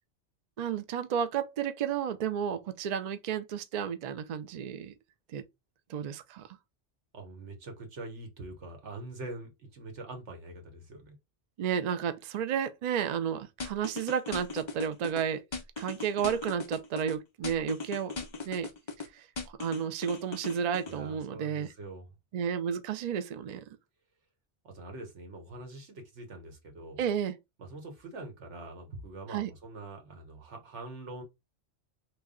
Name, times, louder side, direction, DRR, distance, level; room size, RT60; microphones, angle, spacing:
voice 1, 0.6-4.9 5.3-5.4 5.9-6.5 11.6-15.4 15.8-18.1 18.5-18.7 19.0-19.3 19.6-21.7 22.3-23.6 27.0-27.4 29.3-29.5, right 8 dB, 60° right, 0.4 m, -32 dB
voice 2, 7.1-11.2 20.9-22.1 24.6-27.0 27.6-31.2, right 2 dB, 85° right, 1.4 m, -44 dB
sound 1, 13.6-15.2 15.5-17.1 17.4-19.1 19.4-21.0, left 3 dB, 35° left, 0.5 m, -38 dB
3.3 x 2.2 x 3.6 m
omnidirectional pair, 1.2 m